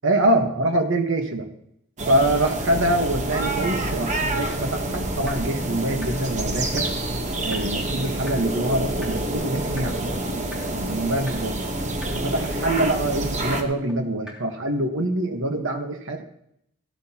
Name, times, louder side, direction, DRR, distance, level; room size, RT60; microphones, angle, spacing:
voice 1, 0.0-1.5 2.1-6.9 7.4-10.3 10.6-11.6 12.1-16.2, right 1 dB, 60° right, 4 dB, 1.2 m, -24 dB
sound 1, 2.0-13.6, right 1 dB, 35° right, 1.1 m, -27 dB
sound 2, 4.5-4.6 4.9-5.0 5.3-5.4 5.6-5.7 6.0-6.1 6.4-6.5 6.8-6.9 7.1-7.2 7.5-7.6 7.9-8.0 8.3-8.4 8.6-8.7 9.0-9.1 9.4-9.5 9.8-9.9 10.1-10.2 10.5-10.6 10.9-11.0 11.3-11.4 11.6-11.7 12.0-12.1 12.4-12.5 12.8-12.9 13.1-13.2 13.5-13.6 13.9-14.0 14.3-14.4, left 1 dB, 5° right, 3.7 m, -39 dB
16.0 x 12.0 x 2.9 m, 0.74 s
head